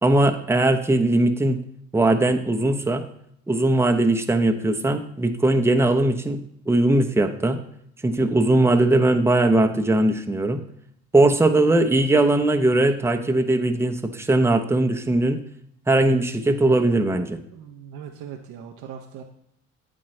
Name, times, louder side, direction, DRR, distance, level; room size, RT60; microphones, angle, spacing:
voice 1, 0.0-1.6 1.9-3.0 3.5-6.4 6.7-7.6 8.0-10.6 11.1-15.4 15.9-17.4, right 2 dB, 10° right, 5 dB, 0.9 m, -20 dB
voice 2, 17.5-19.2, right 8 dB, 70° right, 2 dB, 0.9 m, -39 dB
8.8 x 8.5 x 3.3 m, 0.71 s
hypercardioid pair, 65°, 31 cm